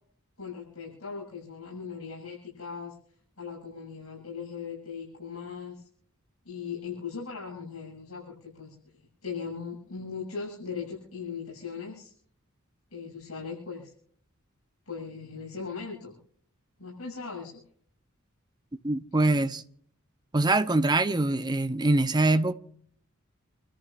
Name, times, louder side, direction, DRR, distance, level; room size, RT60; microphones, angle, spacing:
voice 1, 0.4-2.9 3.4-5.9 6.4-8.7 9.2-12.1 12.9-13.9 14.9-16.2 16.8-17.6 19.1-19.2, left 5 dB, 85° left, 8.0 m, -39 dB
voice 2, 18.8-19.6 20.3-22.5, right 2 dB, 20° right, 0.8 m, -24 dB
29.5 x 14.0 x 2.6 m
head